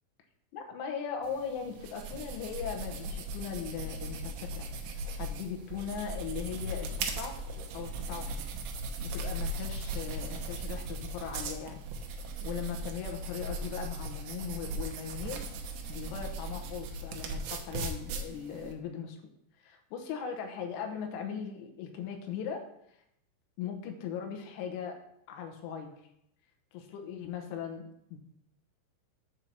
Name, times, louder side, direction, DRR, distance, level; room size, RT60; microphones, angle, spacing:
voice 1, 0.5-4.7 5.1-7.4 7.7-8.4 9.0-11.8 12.4-15.4 15.9-19.2 19.6-22.6 23.6-25.0 25.3-26.0 26.7-27.9 28.1-28.2, left 7 dB, 75° left, 3 dB, 3.4 m, -39 dB
sound 1, 1.2-18.7, right 2 dB, 85° right, 2.3 m, -38 dB
7.9 x 4.5 x 6.7 m, 0.76 s
omnidirectional pair, 5.8 m